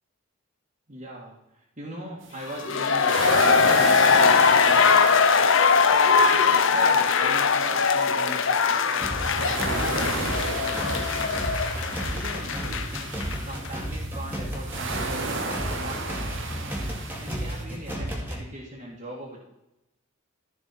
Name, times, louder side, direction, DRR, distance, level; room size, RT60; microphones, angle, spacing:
voice 1, 0.9-5.1 5.8-11.2 12.1-13.0 13.4-16.5 17.2-19.4, equal, 40° right, -6 dB, 2.0 m, -40 dB
sound 1, 2.2-17.6, right 3 dB, 60° right, 1.3 m, -34 dB
sound 2, 2.5-13.4 13.6-13.7, left 5 dB, 65° left, 0.8 m, -21 dB
sound 3, 9.0-18.4, equal, 10° right, 2.0 m, -33 dB
14.5 x 6.0 x 4.5 m, 0.89 s
head